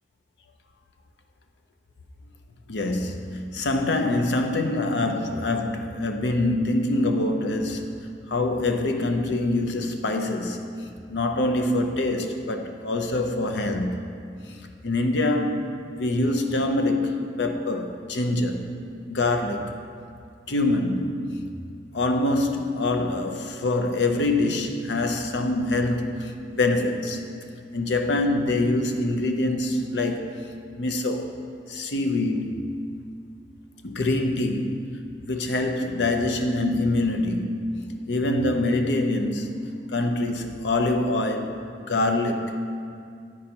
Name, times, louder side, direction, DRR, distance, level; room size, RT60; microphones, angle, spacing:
voice 1, 2.7-14.0 14.5-14.6 14.8-15.7 16.0-18.7 19.1-19.7 20.5-21.4 21.9-26.3 26.6-27.2 27.7-30.4 30.8-31.4 31.7-32.7 33.8-34.9 35.3-41.6 41.9-42.6, left 2 dB, 70° left, 0.6 m, -25 dB
8.5 x 5.3 x 4.4 m
head